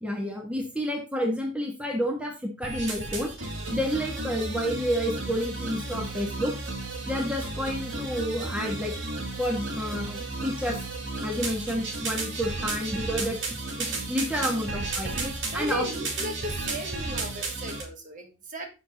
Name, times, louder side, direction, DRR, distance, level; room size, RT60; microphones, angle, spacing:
voice 1, 0.0-3.3 3.7-6.5 7.0-8.9 9.4-10.8 11.2-13.4 13.8-15.1 15.5-15.9, equal, 5° right, 1 dB, 1.4 m, -29 dB
sound 1, 2.6-17.8, right 2 dB, 65° right, 2.7 m, -33 dB
voice 2, 15.0-18.7, equal, 40° right, 4 dB, 1.6 m, -36 dB
8.2 x 6.0 x 3.9 m, 0.30 s
head